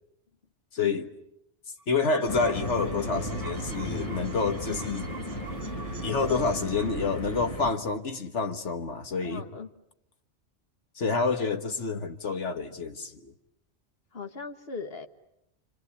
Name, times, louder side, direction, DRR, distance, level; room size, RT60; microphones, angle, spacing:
voice 1, 0.7-1.1 1.9-5.1 6.0-9.5 11.0-13.3, left 4 dB, 85° left, 1.8 m, -28 dB
sound 1, 1.8-7.2, right 3 dB, 60° right, 1.6 m, -45 dB
sound 2, 2.3-7.7, equal, 30° left, 1.8 m, -35 dB
voice 2, 6.2-6.7 9.2-9.7 14.1-15.1, left 4 dB, 60° left, 1.7 m, -39 dB
28.0 x 25.5 x 8.3 m
omnidirectional pair, 1.2 m